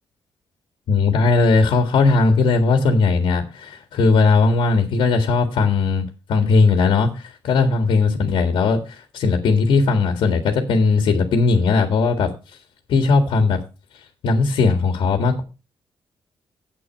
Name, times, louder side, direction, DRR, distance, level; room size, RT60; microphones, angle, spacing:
voice 1, 0.9-12.3 12.9-13.6 14.2-15.4, left 4 dB, 75° left, 6 dB, 1.8 m, -18 dB
9.2 x 8.3 x 4.5 m, 0.30 s
cardioid pair, 155°, 9 cm